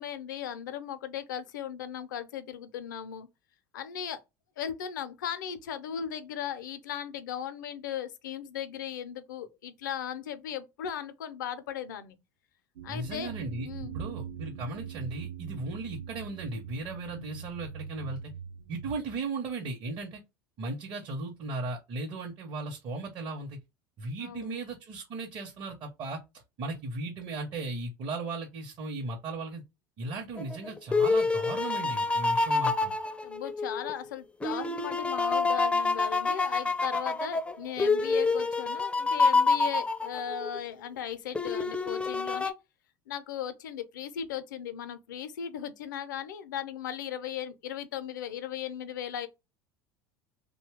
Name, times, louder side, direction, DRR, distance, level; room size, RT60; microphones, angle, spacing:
voice 1, 0.0-3.3 3.7-4.2 4.6-12.2 12.8-13.3 13.6-14.0 24.2-24.6 33.2-42.5 43.1-49.3, left 9 dB, 75° left, 0.5 m, -37 dB
sound 1, 12.8-19.0, right 8 dB, 75° right, 0.4 m, -42 dB
voice 2, 12.9-13.7 13.9-18.2 18.7-20.2 20.6-23.6 24.0-26.2 26.6-29.6 30.0-32.9, right 2 dB, 45° right, 0.7 m, -36 dB
sound 2, 30.4-33.9 34.4-40.6 41.3-42.5, left 3 dB, 10° left, 0.4 m, -27 dB
2.8 x 2.2 x 3.3 m
hypercardioid pair, 75°, 10 cm